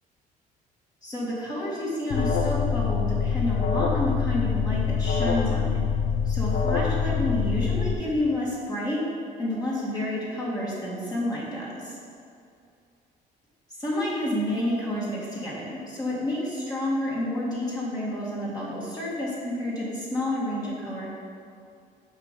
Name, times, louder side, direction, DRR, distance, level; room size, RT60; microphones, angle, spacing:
voice 1, 1.0-5.8 6.3-9.0 9.4-12.0 13.8-21.1, left 1 dB, 20° left, -7 dB, 1.9 m, -29 dB
Alarm, 2.1-7.9, left 6 dB, 60° left, 0.8 m, -25 dB
7.2 x 5.2 x 5.2 m, 2.5 s
cardioid pair, 110°, 17 cm